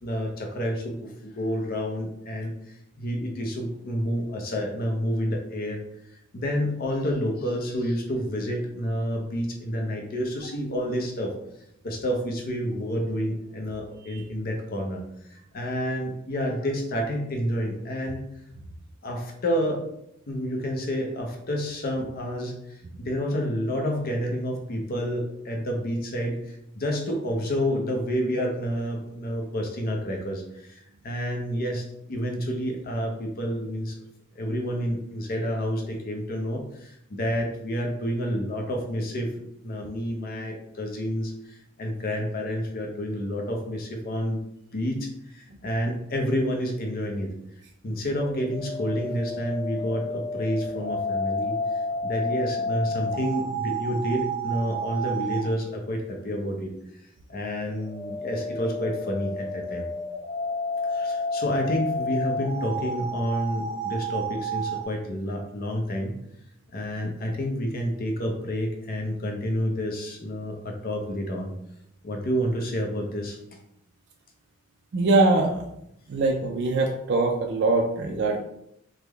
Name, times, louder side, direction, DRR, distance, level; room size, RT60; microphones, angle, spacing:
voice 1, 0.0-5.8 6.3-11.3 11.8-15.0 15.3-18.2 19.0-19.9 20.3-22.5 23.0-34.0 34.4-39.3 39.6-44.4 44.7-47.3 47.8-51.6 52.0-56.7 57.3-59.9 60.9-66.1 66.7-71.5 72.0-73.4, equal, 50° left, 1 dB, 0.5 m, -29 dB
sound 1, 48.1-55.5 57.5-64.8, equal, 30° right, 0.9 m, -31 dB
voice 2, 74.9-75.6 76.1-78.4, right 3 dB, 60° right, 1 dB, 0.4 m, -22 dB
3.4 x 2.1 x 3.3 m, 0.76 s
head